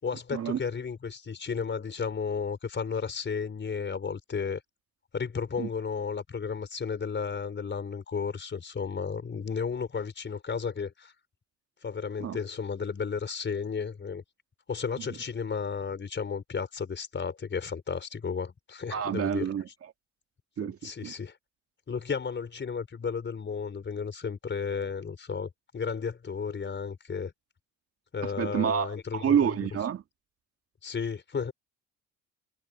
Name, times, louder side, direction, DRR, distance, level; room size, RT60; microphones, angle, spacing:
voice 1, 0.0-4.6 5.1-11.1 11.8-14.2 14.7-19.5 20.6-21.4 21.9-27.3 28.1-29.5 30.8-31.5, left 6 dB, 35° left, 4.8 m, -33 dB
voice 2, 18.9-19.7 20.6-21.1 28.2-30.0, right 8 dB, 50° right, 1.9 m, -28 dB
supercardioid pair, 70°, 31 cm